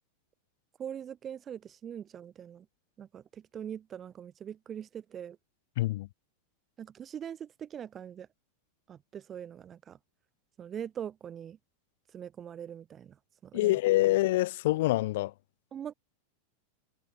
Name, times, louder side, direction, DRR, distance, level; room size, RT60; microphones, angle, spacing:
voice 1, 0.8-2.7 3.0-5.4 6.8-8.3 8.9-10.0 10.6-11.6 12.1-13.8 14.0-14.1 15.7-15.9, right 9 dB, 25° right, 1.7 m, -42 dB
voice 2, 5.8-6.1 13.5-15.3, left 18 dB, 55° left, 0.9 m, -26 dB
figure-of-eight pair, 90°, 0 cm